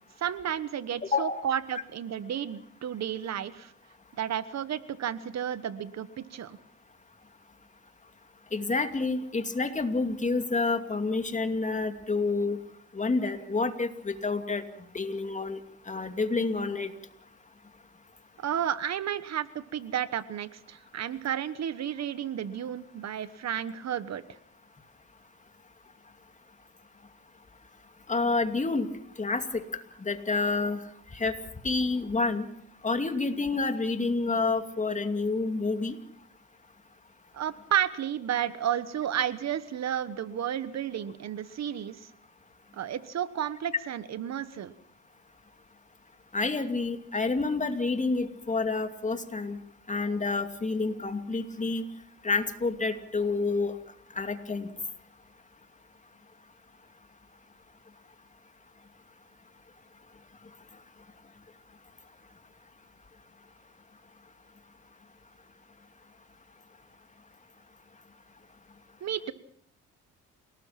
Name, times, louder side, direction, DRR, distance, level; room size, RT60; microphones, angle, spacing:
voice 1, 0.2-3.7 4.2-6.6 18.4-24.2 37.3-42.1 42.7-44.7 69.0-69.3, right 9 dB, 60° right, 14 dB, 1.3 m, -32 dB
voice 2, 1.1-1.5 8.5-12.6 12.9-14.6 14.9-15.6 15.9-16.9 28.1-28.9 29.2-29.6 30.0-30.8 31.1-31.3 31.6-32.5 32.8-36.0 46.3-49.6 49.9-51.8 52.2-53.7 54.2-54.7, left 3 dB, 25° left, 8 dB, 2.5 m, -28 dB
28.5 x 19.0 x 5.9 m, 0.65 s
cardioid pair, 90°, 30 cm